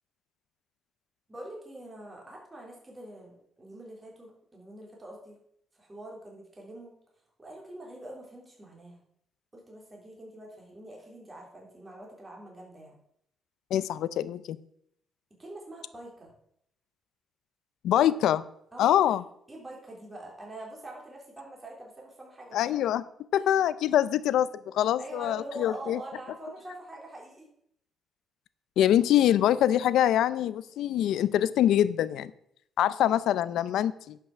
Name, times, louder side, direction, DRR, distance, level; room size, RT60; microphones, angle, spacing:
voice 1, 1.3-5.4 5.8-6.9 7.4-9.0 9.5-13.0 15.4-16.3 18.7-19.2 19.5-22.7 23.4-23.5 25.0-27.5 32.9-33.0, right 1 dB, 20° right, -2 dB, 3.4 m, -44 dB
voice 2, 13.7-14.6 17.8-18.4 18.8-19.2 22.5-23.0 23.3-26.0 28.8-32.3 32.8-34.2, left 11 dB, 80° left, 16 dB, 0.5 m, -24 dB
10.5 x 5.9 x 6.0 m, 0.72 s
cardioid pair, 90°, 0 cm